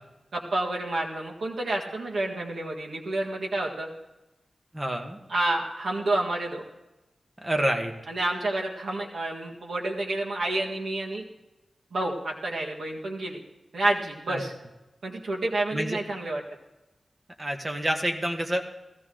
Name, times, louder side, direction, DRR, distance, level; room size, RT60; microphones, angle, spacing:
voice 1, 0.3-3.9 5.3-6.6 8.1-11.2 11.9-13.4 13.7-14.5 15.0-16.4, right 2 dB, 80° right, -2 dB, 1.8 m, -29 dB
voice 2, 4.7-5.2 7.4-7.9 14.3-14.4 15.7-16.0 17.4-18.6, right 1 dB, 25° right, 4 dB, 1.6 m, -27 dB
17.0 x 15.0 x 3.9 m, 1.0 s
wide cardioid pair, 95°, 0 cm